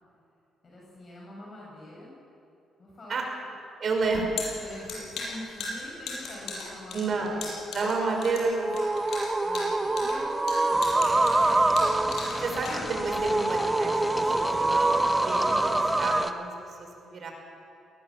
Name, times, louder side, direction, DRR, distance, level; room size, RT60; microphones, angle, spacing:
voice 1, 0.6-2.1 2.8-3.5 4.6-7.5 10.0-11.1, left 1 dB, 40° left, -5 dB, 6.7 m, -45 dB
voice 2, 3.8-4.5 6.9-9.1 9.4-10.0 12.4-17.3, right 3 dB, 50° right, 2 dB, 5.5 m, -31 dB
sound 1, 4.0-13.2, left 3 dB, 70° left, 6.7 m, -37 dB
sound 2, 7.8-16.3, right 2 dB, 20° right, 1.0 m, -25 dB
sound 3, 10.7-16.3, left 2 dB, 20° left, 1.2 m, -37 dB
20.0 x 19.5 x 7.5 m, 2.7 s
cardioid pair, 90°, 0 cm